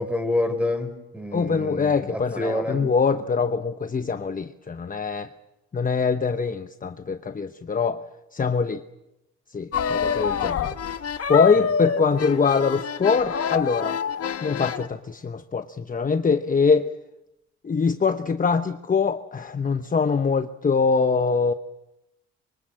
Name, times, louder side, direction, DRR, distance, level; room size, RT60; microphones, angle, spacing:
voice 1, 0.0-2.8 11.6-11.7, left 1 dB, 5° right, 9 dB, 5.3 m, -28 dB
voice 2, 1.3-5.3 5.7-8.0 8.3-8.8 9.5-10.7 11.3-14.0 14.4-16.9 17.6-21.5, left 5 dB, 25° left, 9 dB, 1.0 m, -23 dB
sound 1, 9.7-14.9, left 7 dB, 50° left, 1.5 m, -27 dB
26.0 x 24.5 x 7.7 m, 0.94 s
cardioid pair, 90°, 30 cm